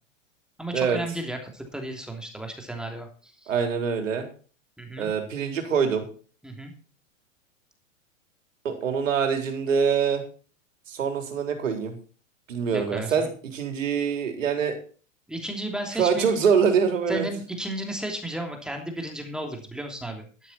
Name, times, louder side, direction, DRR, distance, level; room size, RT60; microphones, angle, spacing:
voice 1, 0.6-3.5 4.8-5.1 6.4-6.7 12.7-13.3 15.3-16.3 17.1-20.5, right 1 dB, ahead, 3 dB, 3.0 m, -34 dB
voice 2, 3.5-4.3 5.0-6.1 8.6-10.2 10.9-12.0 12.5-14.7 15.9-17.3, right 6 dB, 75° right, 5 dB, 4.0 m, -24 dB
12.5 x 12.0 x 4.3 m, 0.39 s
hypercardioid pair, 115°, 39 cm